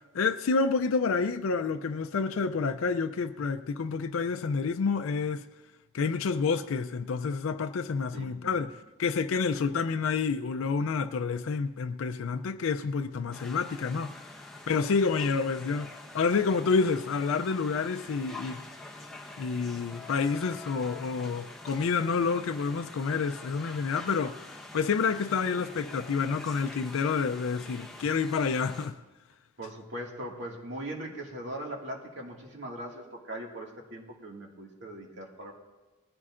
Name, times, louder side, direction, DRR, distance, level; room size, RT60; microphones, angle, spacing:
voice 1, 0.1-5.5 5.9-14.2 14.7-18.6 19.4-29.0, left 5 dB, 80° left, 0.4 m, -29 dB
voice 2, 8.1-8.7 29.6-35.5, right 1 dB, 60° right, 2.0 m, -40 dB
sound 1, 13.3-28.9, left 2 dB, ahead, 1.0 m, -46 dB
20.5 x 15.0 x 2.5 m
head